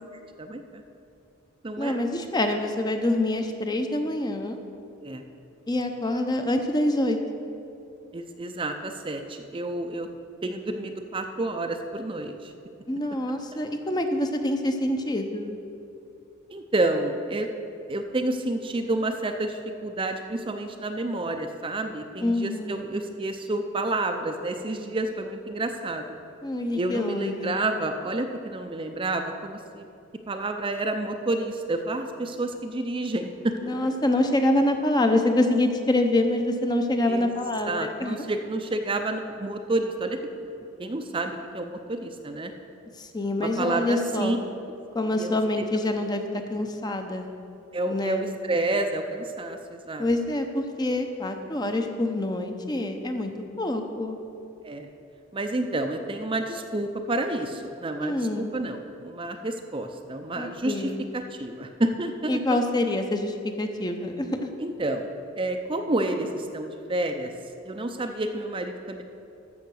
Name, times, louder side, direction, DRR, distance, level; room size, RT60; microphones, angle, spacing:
voice 1, 0.4-0.8 1.6-2.0 5.0-5.2 8.1-10.1 10.4-12.5 13.5-13.6 16.5-17.5 17.9-26.1 26.7-29.8 30.3-34.1 37.1-37.3 37.6-40.2 40.6-42.5 43.4-44.4 45.1-45.7 47.7-50.0 54.6-54.9 55.3-62.4 64.6-67.3 67.6-69.0, right 2 dB, 25° right, 5 dB, 0.5 m, -29 dB
voice 2, 1.8-4.6 5.7-7.2 12.9-15.6 22.2-22.9 26.4-27.6 33.5-38.2 43.0-44.3 44.9-47.3 47.9-48.2 50.0-53.3 53.6-54.2 58.0-58.5 60.4-61.0 62.3-64.5, left 1 dB, 20° left, 5 dB, 0.7 m, -26 dB
14.0 x 5.8 x 6.3 m, 2.6 s
head